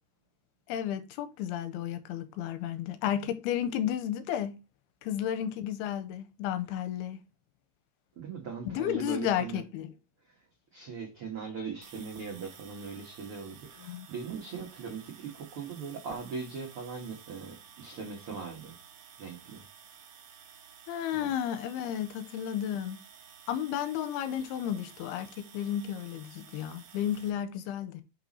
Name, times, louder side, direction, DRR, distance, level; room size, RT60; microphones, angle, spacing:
voice 1, 0.7-4.6 5.0-7.2 8.7-9.9 13.8-14.1 20.9-23.0 23.5-28.0, left 10 dB, 80° left, 2.5 m, -33 dB
voice 2, 8.2-9.6 10.2-10.4 10.7-18.8 19.2-19.6 21.1-21.3, right 5 dB, 80° right, 1.2 m, -40 dB
sound 1, 11.8-27.3, right 7 dB, 65° right, 1.9 m, -53 dB
6.1 x 5.7 x 4.2 m
omnidirectional pair, 4.8 m